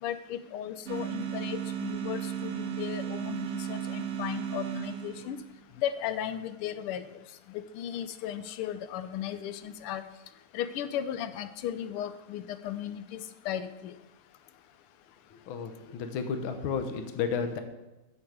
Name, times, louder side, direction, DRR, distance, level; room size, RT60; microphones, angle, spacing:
voice 1, 0.0-5.4 5.8-7.0 7.5-10.0 10.5-13.9, left 10 dB, 90° left, 12 dB, 1.5 m, -36 dB
sound 1, 0.9-5.6, right 9 dB, 60° right, 0.7 m, -35 dB
voice 2, 15.3-17.6, left 6 dB, 70° left, 7 dB, 1.6 m, -32 dB
7.6 x 7.3 x 5.0 m, 1.0 s
omnidirectional pair, 2.4 m